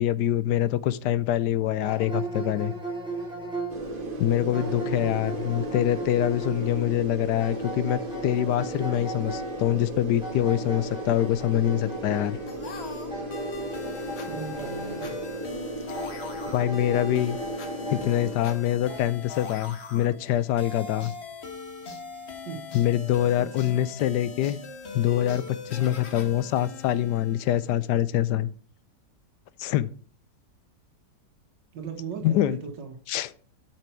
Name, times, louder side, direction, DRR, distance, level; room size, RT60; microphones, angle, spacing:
voice 1, 0.0-2.7 4.2-12.4 16.5-17.4 17.9-21.1 22.7-24.6 24.9-28.5 29.6-29.9 32.2-32.6 33.1-33.3, left 12 dB, 80° left, 1.2 m, -25 dB
sound 1, 1.8-19.0, right 2 dB, 5° right, 3.2 m, -38 dB
sound 2, 3.7-18.4, right 1 dB, 30° right, 1.4 m, -36 dB
voice 2, 4.4-5.1 14.3-15.2 22.1-22.6 23.4-23.7 31.7-33.0, right 6 dB, 85° right, 1.9 m, -38 dB
sound 3, 12.5-28.0, left 3 dB, 40° left, 1.4 m, -41 dB
8.7 x 6.0 x 4.4 m
omnidirectional pair, 1.9 m